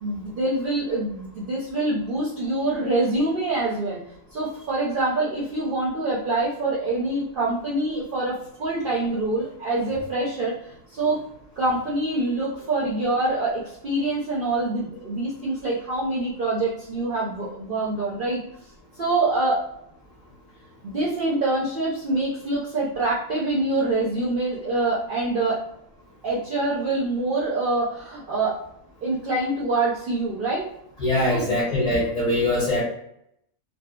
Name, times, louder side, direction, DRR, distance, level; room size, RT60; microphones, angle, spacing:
voice 1, 0.0-4.0 4.3-11.2 11.6-18.4 19.0-19.6 20.8-25.6 26.2-28.6 29.0-30.7 31.3-31.6, right 2 dB, 55° right, -6 dB, 0.6 m, -25 dB
voice 2, 31.0-32.8, left 1 dB, 40° left, -7 dB, 0.8 m, -22 dB
2.6 x 2.4 x 2.2 m, 0.76 s
omnidirectional pair, 1.4 m